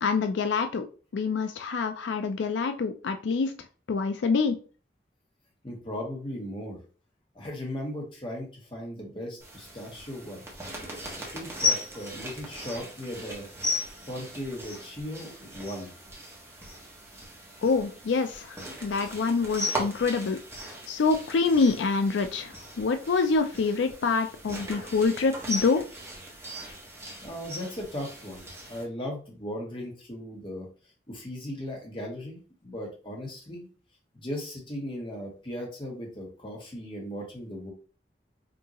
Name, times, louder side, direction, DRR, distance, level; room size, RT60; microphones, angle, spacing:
voice 1, 0.0-0.8 1.1-3.5 3.9-4.6 17.6-20.4 20.9-25.8, left 4 dB, 85° left, 8 dB, 0.4 m, -26 dB
voice 2, 5.6-6.8 7.3-10.4 11.2-13.5 14.1-15.9 27.2-30.7 31.1-33.7 34.2-37.7, left 1 dB, 30° left, -1 dB, 1.3 m, -37 dB
sound 1, 9.4-28.8, left 2 dB, 15° right, 1.2 m, -37 dB
5.1 x 2.7 x 2.9 m, 0.37 s
head